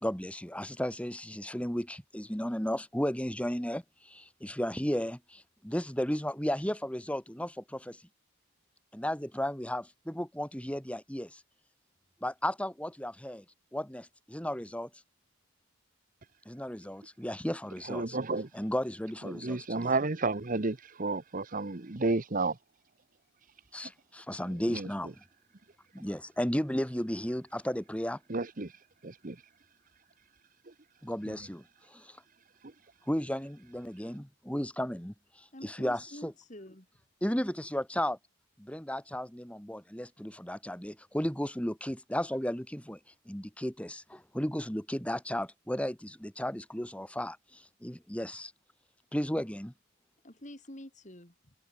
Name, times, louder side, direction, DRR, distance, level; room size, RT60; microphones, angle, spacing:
voice 1, 0.0-8.0 8.9-11.4 12.2-13.4 13.7-14.9 16.5-18.2 18.5-19.9 23.7-25.1 25.9-28.2 31.0-31.6 31.9-32.2 33.1-36.3 37.2-38.2 38.6-43.0 43.3-48.5 49.1-49.7, equal, 5° left, 1.9 m, -34 dB
voice 2, 17.8-18.5 19.2-22.6 24.7-24.9 28.3-29.4 30.7-30.8 31.3-31.4, right 3 dB, 35° right, 0.9 m, -32 dB
voice 3, 35.5-36.9 50.2-51.5, left 1 dB, 35° left, 3.3 m, -48 dB
head